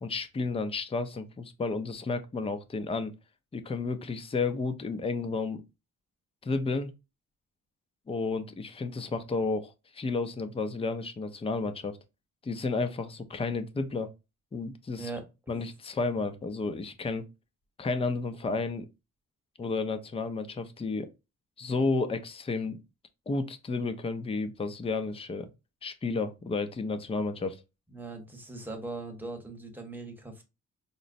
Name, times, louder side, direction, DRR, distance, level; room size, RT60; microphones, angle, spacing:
voice 1, 0.0-3.1 3.5-5.6 6.4-6.9 8.1-12.0 12.4-14.1 14.5-15.1 15.5-17.3 17.8-18.9 19.6-21.1 21.6-22.8 23.3-25.5 25.8-27.6, left 3 dB, 20° left, 0.4 m, -32 dB
voice 2, 27.9-30.4, right 3 dB, 5° right, 1.0 m, -40 dB
5.1 x 2.0 x 2.5 m
wide cardioid pair, 125°, 32 cm